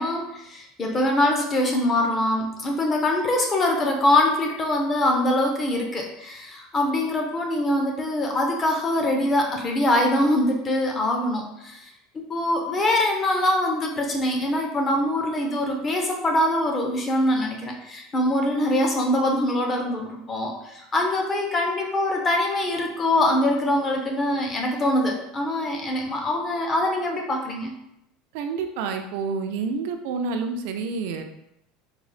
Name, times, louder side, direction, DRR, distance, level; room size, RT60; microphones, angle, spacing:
voice 1, 0.0-11.9 12.1-27.7, left 1 dB, 20° left, 1 dB, 0.5 m, -23 dB
voice 2, 28.3-31.2, right 4 dB, 60° right, 5 dB, 0.3 m, -28 dB
3.7 x 2.0 x 3.2 m, 0.80 s
cardioid pair, 170°, 0 cm